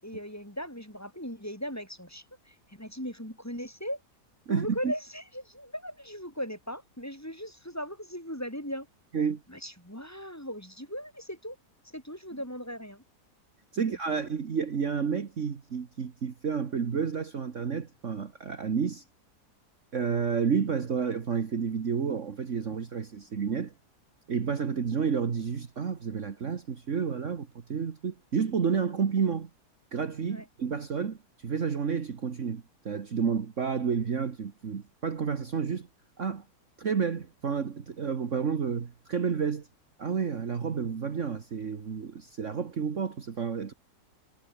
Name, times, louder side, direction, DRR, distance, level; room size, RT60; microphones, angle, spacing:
voice 1, 0.0-4.0 4.5-8.9 9.5-11.6 11.8-13.0 13.8-14.3 30.3-30.5, equal, 10° left, 7.7 m, -38 dB
voice 2, 4.5-4.9 9.1-9.4 13.7-19.0 19.9-23.7 24.3-29.5 29.9-35.9 36.2-36.4 36.8-39.7 40.0-43.7, right 6 dB, 50° right, 1.8 m, -30 dB
omnidirectional pair, 1.7 m